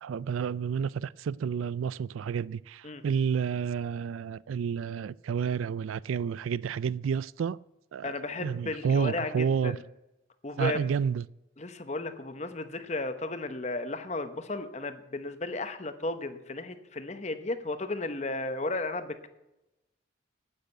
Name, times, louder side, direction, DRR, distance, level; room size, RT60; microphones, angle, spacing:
voice 1, 0.0-7.6 7.9-9.8 10.6-11.2, right 7 dB, 90° right, 0.3 m, -30 dB
voice 2, 8.0-9.8 10.4-10.8 11.6-19.3, left 2 dB, 35° left, 0.9 m, -34 dB
9.9 x 9.1 x 7.8 m
head